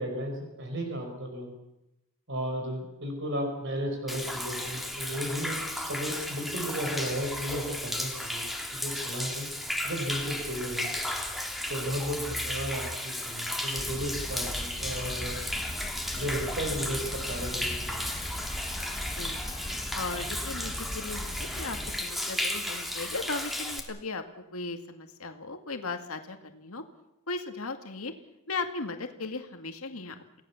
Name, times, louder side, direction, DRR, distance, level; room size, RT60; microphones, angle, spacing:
voice 1, 0.0-1.5 2.3-8.4 8.8-9.5 9.8-10.9 11.7-15.4 16.1-18.0, equal, 60° right, 3 dB, 5.1 m, -34 dB
Human voice / Rain / Stream, 4.1-23.8, left 1 dB, ahead, 2.7 m, -34 dB
sound 1, 13.8-22.0, left 1 dB, 20° left, 1.2 m, -39 dB
voice 2, 19.9-24.2 24.5-26.8 27.3-28.1 28.5-30.4, left 3 dB, 80° left, 6 dB, 2.1 m, -37 dB
29.0 x 18.0 x 7.2 m, 0.89 s
head